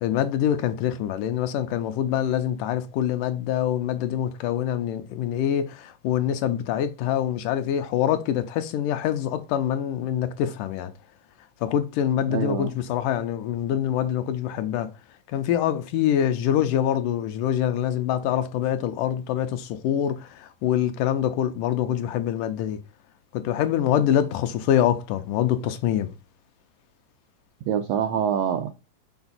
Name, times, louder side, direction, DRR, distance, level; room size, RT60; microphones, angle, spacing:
voice 1, 0.0-10.9 11.6-14.9 15.3-22.8 23.3-26.1, left 10 dB, 80° left, 2.1 m, -25 dB
voice 2, 12.3-12.7 27.6-28.7, right 8 dB, 80° right, 1.5 m, -25 dB
7.1 x 4.3 x 4.1 m
omnidirectional pair, 3.9 m